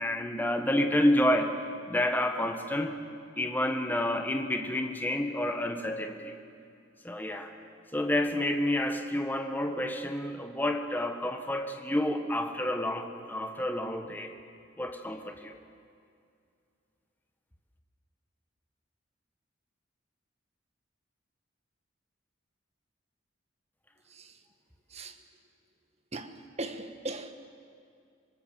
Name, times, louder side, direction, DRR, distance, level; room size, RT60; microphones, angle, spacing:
voice 1, 0.0-1.6 1.9-3.0 3.4-6.4 7.0-7.5 7.9-14.3 14.8-15.6, left 1 dB, 10° left, 5 dB, 1.5 m, -29 dB
voice 2, 24.0-24.4 24.9-25.2 26.1-27.3, right 2 dB, 35° right, 8 dB, 1.4 m, -39 dB
25.5 x 20.0 x 7.6 m, 2.4 s
head